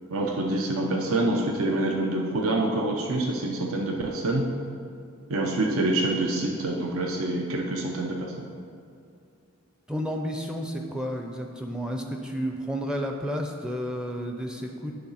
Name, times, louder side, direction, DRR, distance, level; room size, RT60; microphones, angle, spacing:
voice 1, 0.1-4.4 5.3-8.5, right 2 dB, 80° right, 1 dB, 0.7 m, -26 dB
voice 2, 9.9-14.9, equal, 5° right, 2 dB, 0.4 m, -31 dB
9.9 x 3.8 x 5.6 m, 2.5 s
head